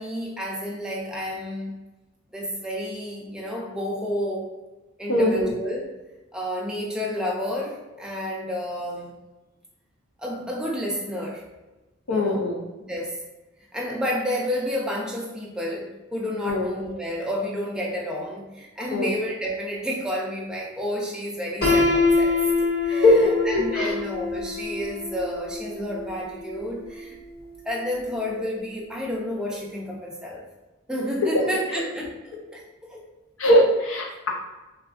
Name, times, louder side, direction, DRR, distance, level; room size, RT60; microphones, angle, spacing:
voice 1, 0.0-1.8 2.3-4.5 5.0-5.9 6.3-9.1 10.2-11.4 12.1-12.5 12.9-13.2 13.7-27.2 27.7-30.4 30.9-33.0, equal, 5° right, -3 dB, 0.4 m, -30 dB
voice 2, 5.1-5.5 12.1-12.6 16.4-16.7 18.9-19.1 23.0-23.9 33.4-34.3, left 1 dB, 85° left, 0 dB, 0.6 m, -20 dB
Piano, 21.6-27.5, left 3 dB, 50° left, 1.1 m, -25 dB
3.6 x 2.3 x 2.4 m, 1.1 s
head